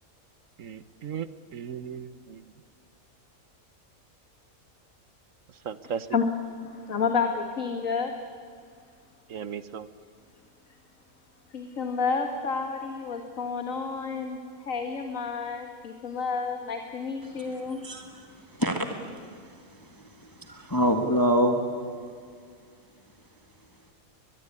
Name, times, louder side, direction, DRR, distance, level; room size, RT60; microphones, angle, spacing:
voice 1, 0.6-1.3 1.5-2.4 5.6-6.1 9.3-9.9, right 7 dB, 65° right, 14 dB, 1.3 m, -36 dB
voice 2, 5.8-6.3 6.5-8.1 11.5-14.4 14.7-17.8, left 5 dB, 65° left, 5 dB, 2.0 m, -30 dB
voice 3, 17.8-18.2 18.6-18.9 20.5-21.6, equal, 15° left, 5 dB, 1.6 m, -24 dB
22.5 x 21.5 x 9.8 m, 2.2 s
omnidirectional pair, 1.5 m